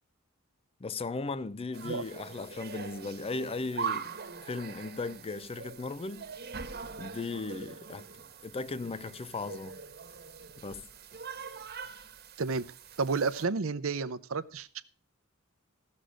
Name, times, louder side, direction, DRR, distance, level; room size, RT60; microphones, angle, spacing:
voice 1, 0.8-4.1 4.5-6.3 7.0-8.1 8.4-9.8 10.6-10.8, left 3 dB, 30° left, 0.5 m, -37 dB
sound 1, 1.7-13.4, right 6 dB, 50° right, 1.3 m, -42 dB
voice 2, 13.0-14.8, right 4 dB, 75° right, 0.7 m, -31 dB
15.5 x 6.5 x 6.3 m
head